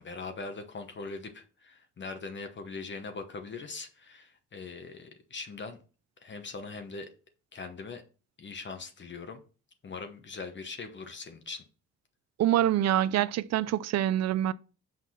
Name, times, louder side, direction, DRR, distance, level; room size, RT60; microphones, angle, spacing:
voice 1, 0.0-5.8 6.2-7.1 7.5-8.0 8.4-9.4 9.8-11.6, left 4 dB, 40° left, 1.0 m, -41 dB
voice 2, 12.4-14.5, right 12 dB, 60° right, 0.5 m, -25 dB
6.0 x 4.6 x 5.8 m
cardioid pair, 90°, 30 cm